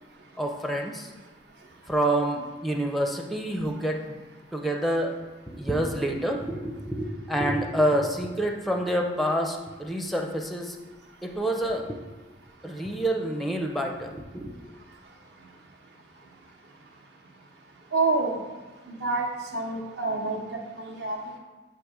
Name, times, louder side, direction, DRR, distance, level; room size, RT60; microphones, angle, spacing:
voice 1, 0.4-1.1 1.9-4.2 4.5-5.1 5.5-10.8 11.2-12.0 12.6-14.5, right 1 dB, ahead, 2 dB, 0.5 m, -27 dB
voice 2, 17.9-18.4 18.9-19.3 19.5-21.2, right 3 dB, 65° right, 0 dB, 1.0 m, -27 dB
7.7 x 2.8 x 4.8 m, 1.3 s
head